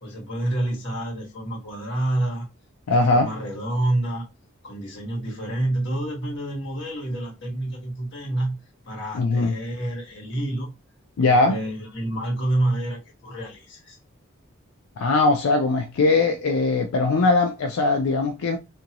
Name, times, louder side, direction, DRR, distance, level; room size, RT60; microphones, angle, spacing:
voice 1, 0.0-2.5 2.9-4.2 4.6-8.6 8.8-10.7 11.2-14.0, right 1 dB, 55° left, 1.2 m, -28 dB
voice 2, 2.9-3.3 9.1-9.5 11.2-11.6 15.0-18.6, left 3 dB, 85° left, 0.4 m, -20 dB
2.6 x 2.6 x 2.8 m
head